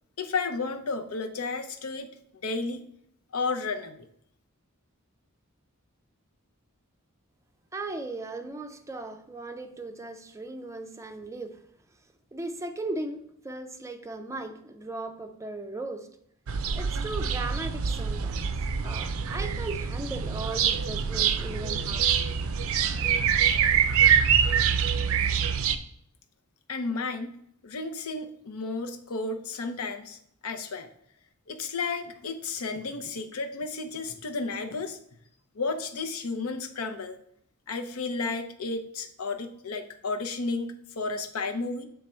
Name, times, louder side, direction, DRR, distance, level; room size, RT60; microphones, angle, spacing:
voice 1, 0.2-2.1 2.4-2.8 3.3-4.1 26.7-27.4 27.6-30.9 31.5-35.0 35.5-37.2 37.7-41.9, left 3 dB, 80° left, 0.7 m, -32 dB
voice 2, 7.7-11.6 12.3-16.2 16.7-18.4 18.8-22.1 23.3-23.4, right 2 dB, 15° right, 0.4 m, -37 dB
sound 1, 16.5-25.8, right 7 dB, 70° right, 0.4 m, -25 dB
7.4 x 3.4 x 4.3 m
head